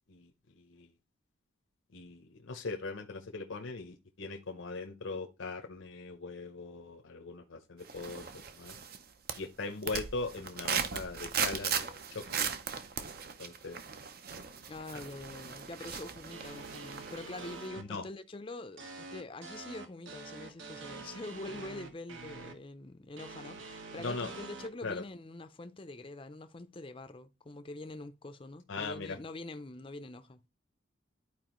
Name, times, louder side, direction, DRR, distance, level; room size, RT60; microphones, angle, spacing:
voice 1, 0.1-0.9 1.9-8.8 9.4-12.4 13.4-13.8 14.4-14.6 14.9-15.1 17.8-18.0 24.0-24.3 24.8-25.0 28.7-29.2, left 3 dB, 80° left, 0.8 m, -40 dB
sound 1, 7.9-9.0 9.3-17.3 17.6-17.7, right 7 dB, 50° right, 0.6 m, -37 dB
voice 2, 14.7-30.4, left 2 dB, 25° left, 0.5 m, -45 dB
sound 2, 16.3-17.8 18.8-22.5 23.2-24.7, right 3 dB, 75° right, 1.3 m, -46 dB
11.5 x 4.6 x 3.0 m
head